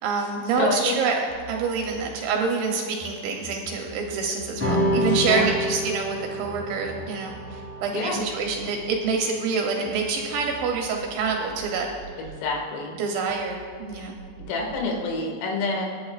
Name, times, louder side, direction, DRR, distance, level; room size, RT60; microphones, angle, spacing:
voice 1, 0.0-11.9 13.0-14.1, right 5 dB, 75° right, 1 dB, 2.9 m, -27 dB
voice 2, 0.6-1.0 5.0-5.5 7.9-8.2 12.2-12.9 13.9-14.1 14.5-15.9, left 3 dB, 85° left, -1 dB, 4.6 m, -27 dB
sound 1, 1.3-3.1 3.4-10.0 10.3-13.0 13.3-14.9, right 1 dB, 40° left, 4.5 m, -46 dB
sound 2, 4.6-11.3, equal, 10° right, 0.8 m, -30 dB
26.0 x 8.9 x 2.4 m, 2.1 s
omnidirectional pair, 5.9 m